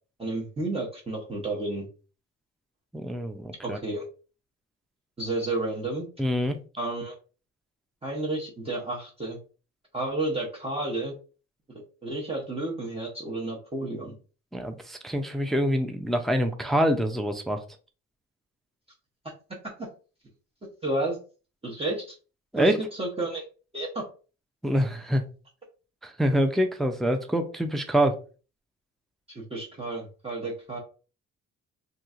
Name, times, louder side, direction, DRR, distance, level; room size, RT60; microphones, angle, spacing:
voice 1, 0.2-1.9 3.6-4.1 5.2-6.1 6.8-7.2 8.0-9.4 9.9-11.1 12.0-14.1 20.8-21.2 21.6-22.1 22.6-23.4 23.7-24.0 29.3-30.8, right 2 dB, 20° right, -3 dB, 0.8 m, -31 dB
voice 2, 2.9-3.8 6.2-6.6 14.5-17.6 22.5-22.8 24.6-25.2 26.0-28.2, equal, ahead, 6 dB, 0.4 m, -25 dB
2.9 x 2.7 x 2.4 m, 0.36 s
cardioid pair, 90°, 30 cm